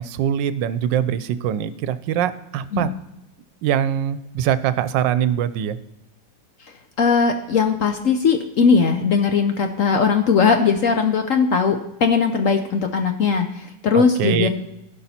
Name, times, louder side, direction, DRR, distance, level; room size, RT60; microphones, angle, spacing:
voice 1, 0.0-2.9 3.6-5.8 13.9-14.5, right 10 dB, 80° right, 14 dB, 1.3 m, -23 dB
voice 2, 7.0-14.5, left 5 dB, 60° left, 6 dB, 0.9 m, -19 dB
15.5 x 5.5 x 4.2 m, 0.89 s
omnidirectional pair, 2.0 m